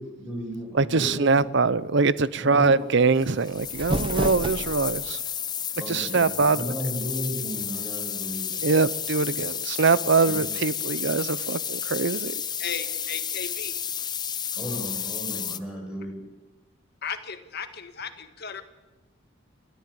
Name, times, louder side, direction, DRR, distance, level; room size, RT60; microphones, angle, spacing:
voice 1, 0.0-1.4 2.4-2.8 5.8-8.7 10.3-10.4 14.6-16.3, equal, 5° right, 6.9 m, -34 dB
voice 2, 0.7-5.2 5.9-6.7 8.6-12.3, right 4 dB, 60° right, 0.7 m, -23 dB
sound 1, 3.2-15.6, left 8 dB, 20° left, 0.7 m, -32 dB
sound 2, 3.5-5.1, right 1 dB, 25° right, 1.2 m, -30 dB
voice 3, 12.6-13.8 17.0-18.6, left 6 dB, 55° left, 1.8 m, -35 dB
29.0 x 13.5 x 8.6 m
head